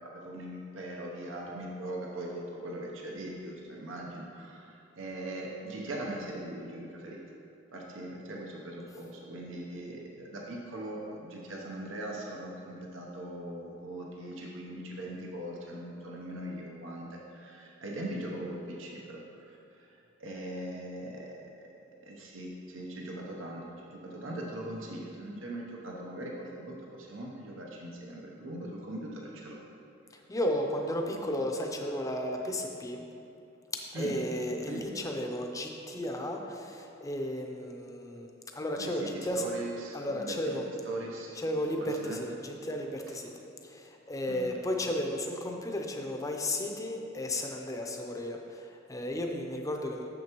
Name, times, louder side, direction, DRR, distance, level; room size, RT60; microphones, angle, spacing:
voice 1, 0.0-7.2 7.7-21.4 22.0-29.6 33.9-34.1 34.7-34.8 38.8-40.4 40.8-41.3 41.8-42.2 44.3-44.4, right 1 dB, 80° right, -2 dB, 0.8 m, -40 dB
voice 2, 30.3-33.0 33.7-39.5 39.9-40.7 41.3-43.3 43.6-50.1, left 1 dB, 15° left, 2 dB, 0.6 m, -34 dB
9.0 x 6.6 x 3.0 m, 2.7 s
head